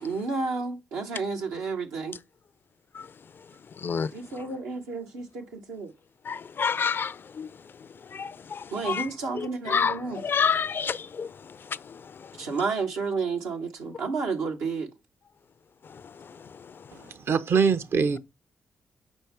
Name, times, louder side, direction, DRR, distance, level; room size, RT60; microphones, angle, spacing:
voice 1, 0.0-2.2 4.1-5.9 8.7-10.2 12.4-14.9, right 4 dB, 85° right, 1.1 m, -31 dB
voice 2, 3.8-4.1 6.3-7.5 8.1-9.1 9.4-12.3 15.9-16.0 16.3-16.4 16.7-16.8, left 6 dB, 50° left, 0.4 m, -29 dB
voice 3, 16.9-18.2, right 5 dB, 60° right, 0.7 m, -24 dB
5.3 x 4.5 x 4.6 m
supercardioid pair, 45°, 5 cm